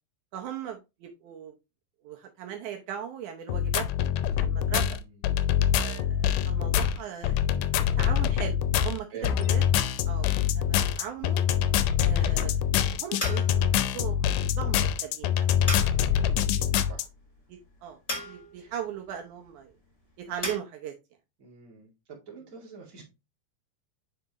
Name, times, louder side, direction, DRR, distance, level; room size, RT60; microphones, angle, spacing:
voice 1, 0.3-1.5 2.0-4.1 4.4-5.0 5.8-7.5 8.0-8.6 8.8-9.6 10.1-11.4 12.0-14.3 14.6-15.3 16.1-16.8 17.5-19.7 20.2-20.9, right 9 dB, 75° right, 2.2 m, -38 dB
sound 1, 3.5-17.0, left 9 dB, 90° left, 2.2 m, -25 dB
voice 2, 4.5-5.2 9.1-9.4 16.1-16.2 16.8-17.1 18.6-18.7 21.4-23.0, right 6 dB, 30° right, 2.2 m, -46 dB
sound 2, 10.9-20.6, left 1 dB, 15° left, 1.5 m, -40 dB
9.1 x 3.8 x 3.0 m
omnidirectional pair, 3.7 m